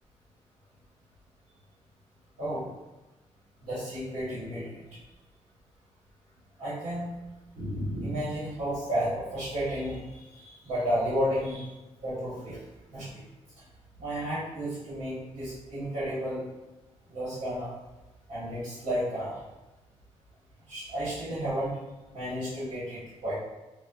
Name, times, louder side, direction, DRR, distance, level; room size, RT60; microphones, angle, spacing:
voice 1, 3.6-4.8 6.6-7.1 7.5-11.7 12.0-12.6 12.9-13.1 14.0-16.4 17.1-17.7 18.3-19.3 20.7-21.7 22.1-23.3, equal, 85° right, -10 dB, 1.2 m, -32 dB
4.2 x 2.0 x 2.3 m, 1.1 s
cardioid pair, 120°, 12 cm